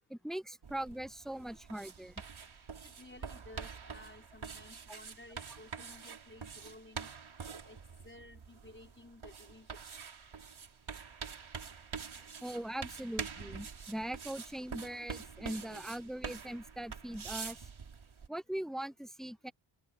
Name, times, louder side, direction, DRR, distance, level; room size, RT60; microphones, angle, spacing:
voice 1, 0.1-2.2 12.4-17.7 18.3-19.5, right 1 dB, ahead, 0.8 m, -41 dB
sound 1, 0.6-18.3, right 6 dB, 80° right, 5.2 m, -46 dB
voice 2, 2.8-7.1 7.6-9.8, left 2 dB, 25° left, 6.0 m, -55 dB
wide cardioid pair, 120°, 47 cm